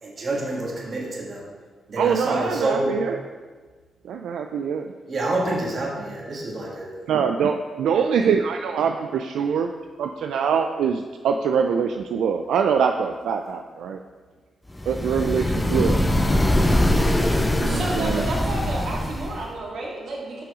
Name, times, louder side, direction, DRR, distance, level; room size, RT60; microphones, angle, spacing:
voice 1, 0.0-1.5 1.9-3.0 5.1-7.1, right 2 dB, 40° right, -3 dB, 1.6 m, -27 dB
voice 2, 2.0-3.2 4.0-4.9 7.1-9.7 10.0-14.0 14.9-16.1 17.6-18.3, right 6 dB, 85° right, 5 dB, 0.3 m, -24 dB
sound 1, 14.8-19.5, left 1 dB, 10° left, 0.6 m, -22 dB
voice 3, 17.7-20.4, right 2 dB, 65° right, -3 dB, 2.0 m, -31 dB
6.1 x 5.7 x 4.8 m, 1.4 s
cardioid pair, 130°, 0 cm